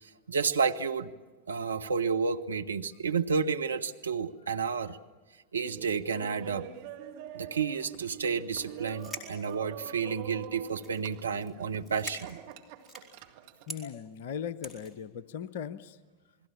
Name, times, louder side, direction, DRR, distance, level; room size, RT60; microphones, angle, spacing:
voice 1, 0.0-1.1 1.5-5.0 5.5-6.7 7.3-12.4, right 5 dB, 75° right, 7 dB, 1.1 m, -31 dB
Laughter, 5.6-13.7, right 10 dB, 50° right, 1.8 m, -45 dB
sound 1, 8.9-10.1 10.7-11.1 11.4-11.5 11.8-13.2 13.7-13.8 14.6-15.0, right 1 dB, 5° left, 4.3 m, -43 dB
voice 2, 13.7-16.0, left 8 dB, 55° left, 14 dB, 0.8 m, -38 dB
28.5 x 21.0 x 7.2 m, 1.3 s
figure-of-eight pair, 90°, 0 cm